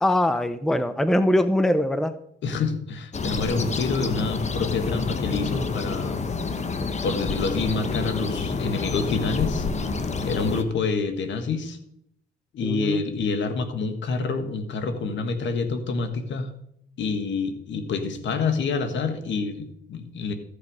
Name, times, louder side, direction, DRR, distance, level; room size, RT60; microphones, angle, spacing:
voice 1, 0.0-2.2 12.6-13.0, left 1 dB, ahead, 12 dB, 0.6 m, -22 dB
voice 2, 2.4-6.2 7.0-9.7 10.2-11.8 12.5-16.5 17.0-20.3, left 4 dB, 70° left, 8 dB, 1.6 m, -27 dB
sound 1, 3.1-10.6, left 4 dB, 35° left, 1.2 m, -28 dB
14.0 x 6.7 x 4.9 m, 0.72 s
cardioid pair, 90°, 20 cm